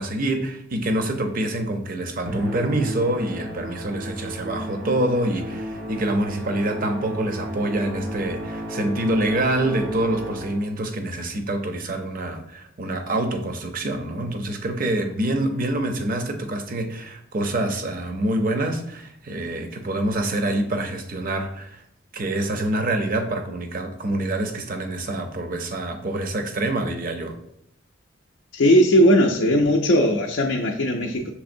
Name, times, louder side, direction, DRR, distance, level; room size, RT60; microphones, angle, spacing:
voice 1, 0.0-21.8 22.1-27.4, right 1 dB, 45° right, 0.6 m, -26 dB
Musical instrument, 2.3-10.8, equal, 75° right, 1.1 m, -33 dB
voice 2, 28.5-31.3, equal, 60° left, 0.4 m, -18 dB
6.0 x 3.4 x 2.6 m
head